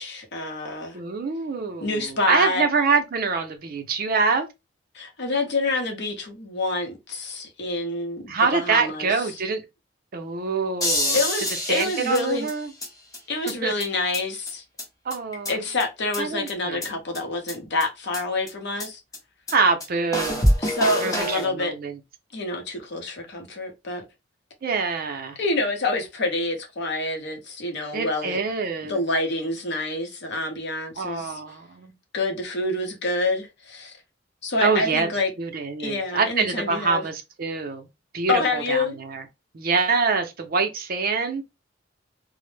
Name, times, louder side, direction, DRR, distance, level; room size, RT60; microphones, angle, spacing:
voice 1, 0.0-1.0 1.8-2.6 4.9-9.1 11.1-12.5 13.3-14.6 15.5-19.0 20.6-21.7 22.3-24.0 25.4-28.4 28.9-31.4 32.1-33.9 34.4-35.3 35.8-37.0 38.3-39.0, left 2 dB, 65° left, 0.7 m, -27 dB
voice 2, 0.9-4.5 8.3-9.6 10.1-11.2 11.7-12.7 13.6-13.7 15.0-15.6 16.2-16.9 19.5-20.4 21.0-22.0 24.6-25.4 27.9-29.0 31.0-31.9 34.6-35.1 35.4-37.9 38.1-39.2 39.5-41.4, right 4 dB, 50° right, 0.5 m, -25 dB
sound 1, 10.8-12.9 13.1-13.2 13.5-13.6 13.8-13.9 14.1-14.2 14.5-14.6 14.8-14.9 15.1-15.8 16.1-16.2 16.5-16.6 16.8-16.9 17.1-17.2 17.5-17.6 17.8-17.9 18.1-18.2 18.5-18.6 18.8-18.9 19.1-19.2 19.5-19.6 19.8-19.9 20.1-21.5, equal, 20° left, 0.8 m, -26 dB
2.0 x 2.0 x 3.1 m
head